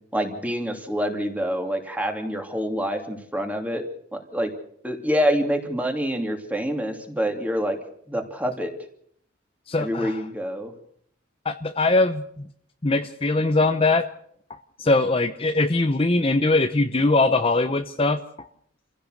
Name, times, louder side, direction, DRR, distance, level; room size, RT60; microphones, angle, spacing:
voice 1, 0.1-3.8 4.1-4.5 4.8-7.8 8.1-8.7 9.8-10.7, equal, 10° right, 4 dB, 2.8 m, -26 dB
voice 2, 9.7-10.3 11.4-12.5 12.8-14.1 14.8-18.5, left 2 dB, 30° left, 8 dB, 0.8 m, -21 dB
27.5 x 16.0 x 6.6 m, 0.68 s
head